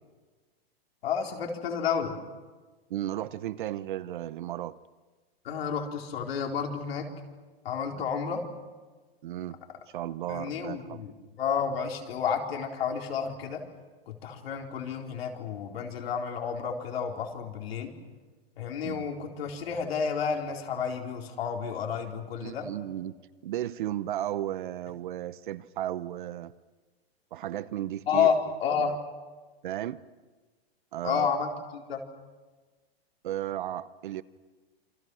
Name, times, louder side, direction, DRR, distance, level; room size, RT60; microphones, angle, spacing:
voice 1, 1.0-2.2 5.4-7.1 7.6-8.4 10.3-11.1 11.4-13.6 14.1-17.9 18.6-22.7 28.1-29.0 31.0-32.0, left 6 dB, 70° left, 2 dB, 4.3 m, -30 dB
voice 2, 2.9-4.8 7.8-8.1 9.2-9.6 9.9-11.0 18.8-19.1 22.4-23.2 23.4-26.5 27.3-28.3 28.7-28.9 29.6-30.0 30.9-31.3 33.2-34.2, right 12 dB, 50° right, 15 dB, 0.9 m, -34 dB
28.0 x 26.0 x 6.4 m, 1.3 s
supercardioid pair, 175°, 32 cm